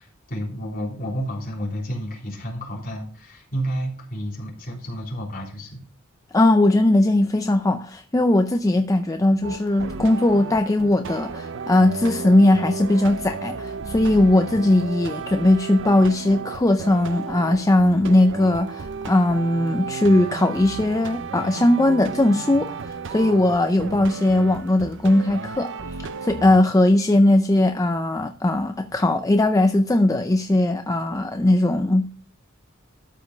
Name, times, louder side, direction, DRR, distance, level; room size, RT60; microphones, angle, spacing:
voice 1, 0.0-5.8, equal, 45° left, 3.7 m, -31 dB
voice 2, 6.3-26.0 26.2-32.1, left 1 dB, 15° left, 0.5 m, -19 dB
sound 1, 9.4-26.6, right 4 dB, 60° right, 0.6 m, -33 dB
13.0 x 5.2 x 5.0 m
head